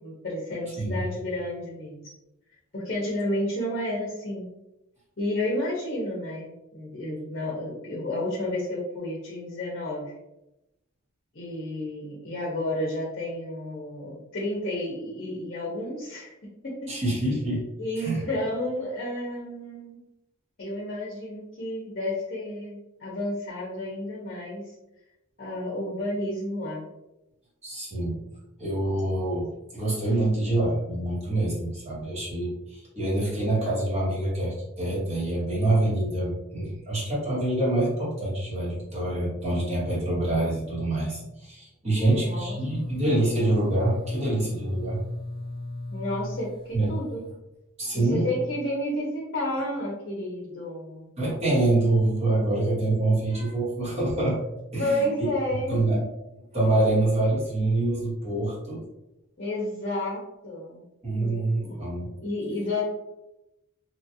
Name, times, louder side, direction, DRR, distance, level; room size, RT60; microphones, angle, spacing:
voice 1, 0.0-2.1 2.7-4.5 5.2-10.1 11.3-16.3 16.6-16.9 17.8-20.0 20.6-24.7 25.4-26.8 41.9-42.9 45.9-47.2 47.9-51.1 54.8-55.8 59.4-60.8 61.2-61.3 61.6-61.8 62.2-62.8, left 1 dB, 50° left, -3 dB, 0.7 m, -31 dB
voice 2, 16.9-17.6 18.0-18.2 27.6-28.2 28.6-45.0 46.7-46.9 47.8-48.3 51.2-54.4 54.7-55.1 55.7-56.0 56.5-58.8 61.0-62.1, right 2 dB, 35° right, -6 dB, 1.2 m, -26 dB
sound 1, 42.0-47.3, left 2 dB, 25° left, 0.3 m, -36 dB
2.9 x 2.4 x 2.7 m, 0.92 s
head